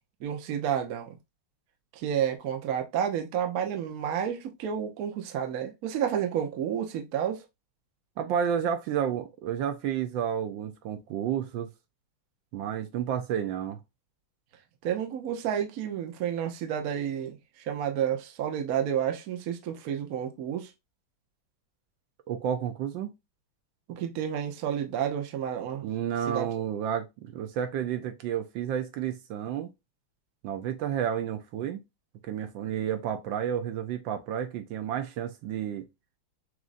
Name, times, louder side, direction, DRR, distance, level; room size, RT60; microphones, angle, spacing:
voice 1, 0.2-1.2 1.9-7.4 14.8-20.7 23.9-25.9 26.3-26.5, right 9 dB, 60° right, 1.1 m, -30 dB
voice 2, 8.2-11.7 12.5-13.8 22.3-23.1 25.8-29.7 30.4-31.8 32.3-35.9, right 9 dB, 75° right, 1.3 m, -31 dB
6.2 x 2.5 x 2.5 m
omnidirectional pair, 2.1 m